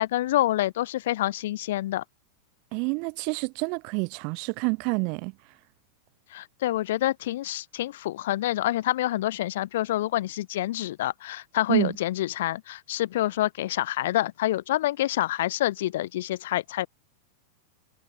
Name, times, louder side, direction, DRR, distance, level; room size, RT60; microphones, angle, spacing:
voice 1, 0.0-2.0 6.3-16.9, left 14 dB, 55° left, 4.2 m, -27 dB
voice 2, 2.7-5.3 11.7-11.9, right 35 dB, 45° right, 2.9 m, -28 dB
figure-of-eight pair, 90°, 0 cm